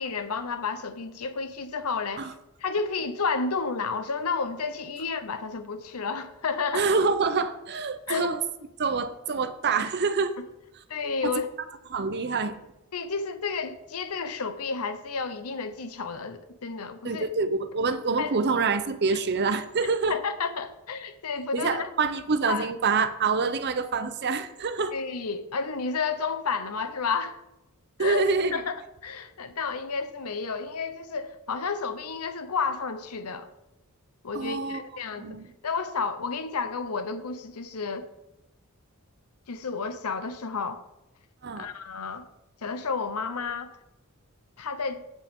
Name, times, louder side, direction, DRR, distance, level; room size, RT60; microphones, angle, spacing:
voice 1, 0.0-2.3 2.6-6.9 8.1-8.3 10.9-11.5 12.9-17.3 18.2-18.3 20.1-21.9 22.5-22.7 24.9-27.4 28.0-28.3 28.5-28.7 29.0-33.5 34.2-35.4 35.6-38.1 39.5-40.8 41.6-42.2 42.6-43.8 44.6-45.0, left 5 dB, 85° left, 0.8 m, -31 dB
voice 2, 6.7-8.4 8.8-10.3 11.2-11.4 11.9-12.6 17.0-20.2 21.5-24.9 28.0-28.5 34.3-34.8 35.2-35.5 41.4-41.7, right 4 dB, 50° right, 0.7 m, -26 dB
15.0 x 5.3 x 3.7 m
head